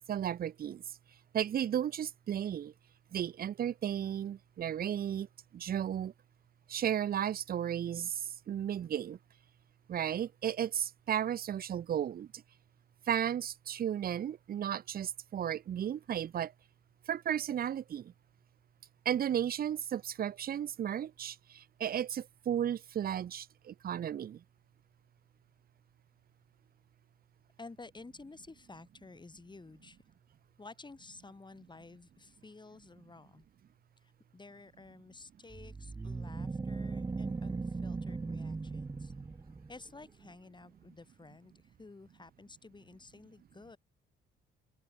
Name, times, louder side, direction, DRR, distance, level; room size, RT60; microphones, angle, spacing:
voice 1, 0.1-0.8 1.3-2.7 3.1-5.3 5.5-6.1 6.7-9.2 9.9-12.4 13.1-16.5 17.1-18.1 19.0-24.4, right 9 dB, 50° right, 0.7 m, -34 dB
voice 2, 27.6-30.0 30.6-33.4 34.0-39.1 39.7-43.8, left 3 dB, 20° left, 7.1 m, -52 dB
sound 1, 35.5-39.9, right 3 dB, 20° right, 0.9 m, -38 dB
cardioid pair, 90°, 20 cm